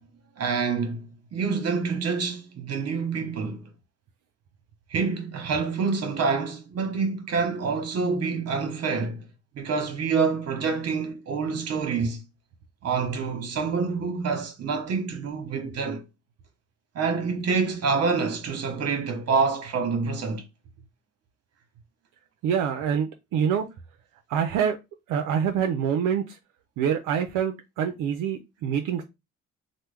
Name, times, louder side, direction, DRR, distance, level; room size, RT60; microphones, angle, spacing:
voice 1, 0.4-3.7 4.9-9.2 9.5-12.2 12.8-16.0 16.9-20.4, right 5 dB, 55° right, 1.0 m, -27 dB
voice 2, 22.4-23.7 24.3-24.8 25.1-26.4 26.8-29.0, right 8 dB, 85° right, 0.5 m, -26 dB
3.0 x 2.1 x 3.3 m
cardioid pair, 90°, 30 cm